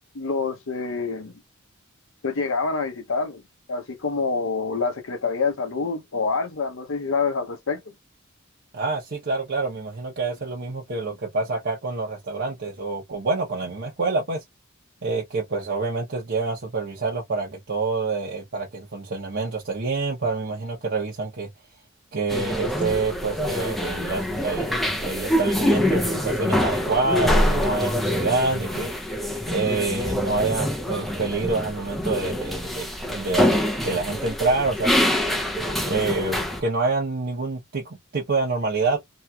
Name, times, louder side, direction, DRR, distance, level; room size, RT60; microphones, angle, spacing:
voice 1, 0.1-1.3 2.2-3.4 3.7-7.8, left 4 dB, 65° left, 0.8 m, -26 dB
voice 2, 8.7-14.4 15.0-21.5 22.1-28.9 29.5-35.1 35.9-39.0, right 3 dB, 50° right, 0.9 m, -27 dB
sound 1, 22.3-36.6, left 1 dB, ahead, 0.6 m, -25 dB
3.1 x 2.8 x 2.3 m
head